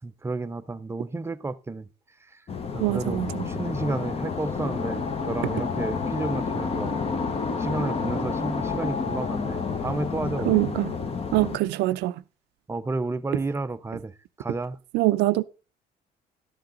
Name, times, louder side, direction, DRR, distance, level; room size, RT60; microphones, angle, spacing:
voice 1, 0.0-1.9 2.2-2.4 2.7-7.0 7.6-10.7 12.7-14.8, right 2 dB, 15° right, 0.6 m, -31 dB
sound 1, 2.5-11.6, left 5 dB, 35° left, 1.1 m, -29 dB
voice 2, 2.8-3.5 10.5-10.9 11.3-12.1 14.9-15.4, right 18 dB, 90° right, 0.6 m, -23 dB
13.0 x 7.9 x 3.9 m
cardioid pair, 110°, 17 cm